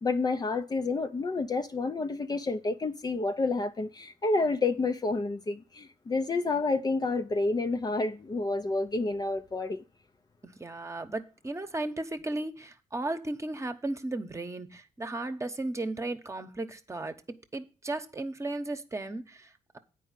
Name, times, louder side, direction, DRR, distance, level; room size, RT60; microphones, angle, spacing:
voice 1, 0.0-9.8, left 3 dB, 30° left, 0.6 m, -29 dB
voice 2, 10.4-17.1 17.5-19.8, right 2 dB, 20° right, 1.1 m, -35 dB
9.2 x 4.8 x 7.4 m
cardioid pair, 85°, 14 cm